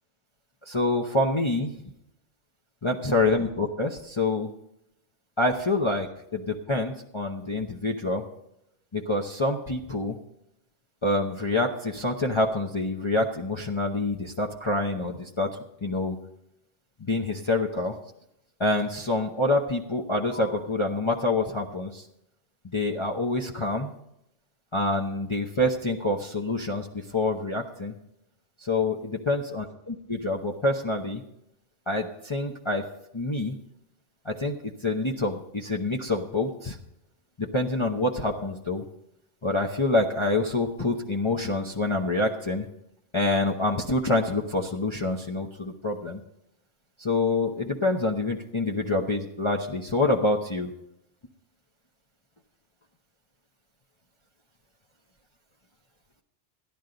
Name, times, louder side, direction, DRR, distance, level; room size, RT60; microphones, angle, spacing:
voice 1, 0.7-1.7 2.8-4.5 5.4-8.3 8.9-10.2 11.0-16.2 17.0-18.0 18.6-22.1 22.7-23.9 24.7-27.9 28.6-31.2 31.9-32.9 33.1-33.6 34.2-36.8 37.4-38.8 39.4-42.7 43.1-46.2 47.0-50.7, left 2 dB, 30° left, 0 dB, 0.8 m, -26 dB
14.0 x 11.0 x 3.9 m, 0.82 s
omnidirectional pair, 1.2 m